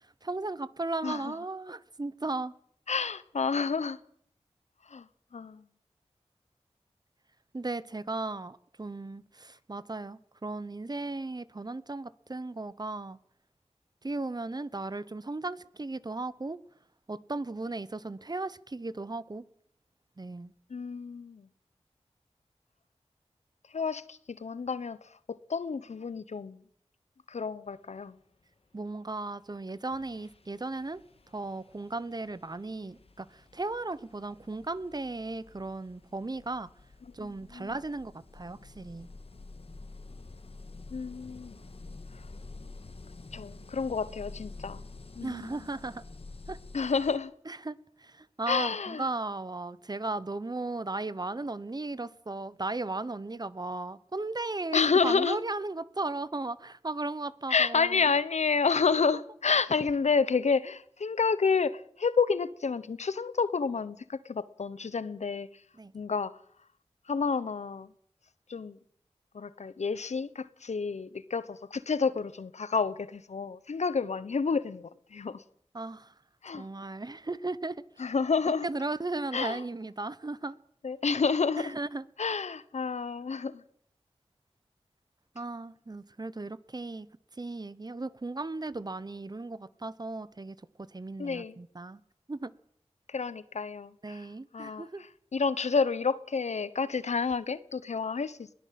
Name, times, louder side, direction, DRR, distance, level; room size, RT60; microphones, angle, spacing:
voice 1, 0.2-2.5 7.5-13.2 14.0-16.6 17.1-19.4 20.2-20.5 28.7-31.0 31.3-36.7 37.1-39.1 45.2-46.0 46.5-46.6 47.5-58.0 65.8-65.9 75.7-76.1 76.5-77.8 78.6-80.6 81.6-82.0 85.3-87.1 87.4-90.6 90.9-92.0 92.3-92.5 94.0-95.0, right 2 dB, 35° right, 1.0 m, -36 dB
voice 2, 1.0-1.3 2.9-4.0 4.9-5.1 5.3-5.6 20.7-21.5 23.7-25.0 25.3-26.6 27.3-28.2 37.5-37.7 40.9-41.6 43.3-44.8 45.2-45.6 46.7-47.3 48.5-49.1 54.7-55.4 57.5-65.5 65.9-66.4 67.1-67.9 68.5-68.8 69.3-75.4 76.4-76.7 78.0-78.7 79.3-79.6 80.8-81.8 82.2-83.6 91.2-91.6 93.1-94.3 94.5-98.5, left 5 dB, 80° left, 1.0 m, -29 dB
sound 1, 29.4-29.6 29.9-47.2, left 3 dB, 60° left, 1.8 m, -49 dB
21.5 x 16.5 x 7.6 m
wide cardioid pair, 60°, 11 cm